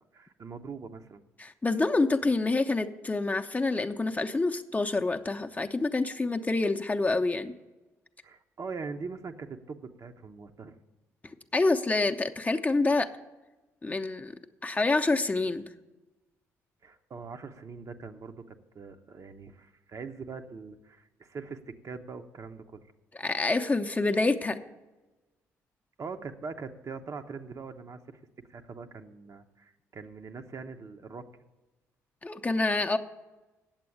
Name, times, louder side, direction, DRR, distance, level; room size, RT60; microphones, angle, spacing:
voice 1, 0.0-1.2 8.2-10.8 16.8-22.9 26.0-28.2 28.5-31.3, right 4 dB, 45° right, 7 dB, 0.8 m, -42 dB
voice 2, 1.4-7.5 11.5-13.1 13.8-14.3 14.6-15.6 23.2-24.6 32.2-33.0, left 3 dB, 20° left, 5 dB, 0.6 m, -27 dB
8.9 x 7.6 x 7.2 m, 1.1 s
hypercardioid pair, 45°, 8 cm